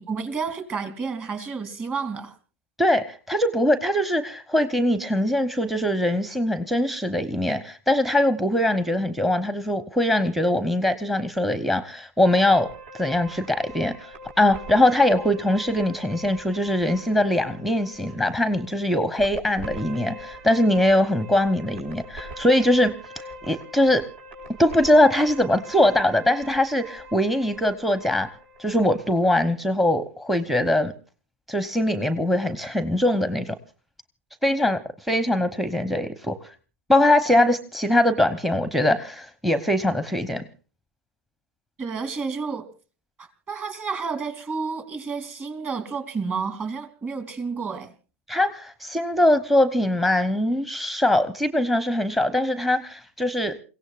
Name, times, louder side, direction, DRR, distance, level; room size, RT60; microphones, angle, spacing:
voice 1, 0.0-2.3 41.8-42.7 43.2-47.9, right 5 dB, 25° right, 9 dB, 3.1 m, -30 dB
voice 2, 2.8-12.7 12.9-24.1 24.6-30.9 31.5-33.5 34.4-36.4 36.9-40.4 48.3-53.6, left 1 dB, ahead, 12 dB, 0.9 m, -22 dB
sound 1, 12.2-29.3, equal, 65° right, 5.3 m, -42 dB
29.0 x 17.0 x 2.5 m, 0.36 s
figure-of-eight pair, 95°, 7 cm